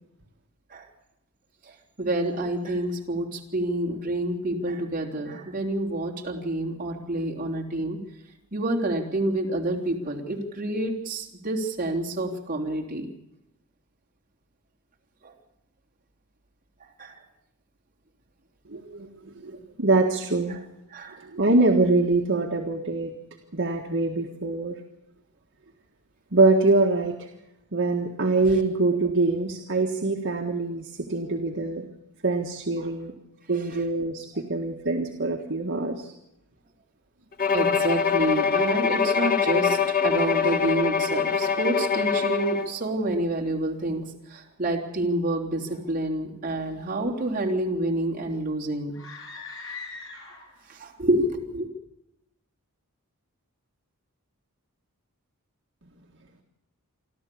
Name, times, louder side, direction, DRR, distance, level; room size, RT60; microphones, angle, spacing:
voice 1, 1.7-8.0 8.5-13.1 15.2-15.3 17.0-17.2 20.5-20.6 20.9-21.2 28.5-28.6 32.8-32.9 37.5-44.0 44.3-48.9 50.7-51.7, right 1 dB, 40° right, 0 dB, 3.4 m, -28 dB
voice 2, 18.7-20.6 21.2-23.1 23.5-24.8 26.3-27.3 27.7-31.9 32.2-33.1 33.5-36.1, right 3 dB, 55° right, 0 dB, 1.7 m, -24 dB
Bowed string instrument, 37.4-42.7, left 6 dB, 40° left, 1.4 m, -24 dB
sound 1, 48.9-50.7, left 4 dB, 60° left, 7.4 m, -40 dB
28.0 x 13.0 x 8.6 m, 0.87 s
head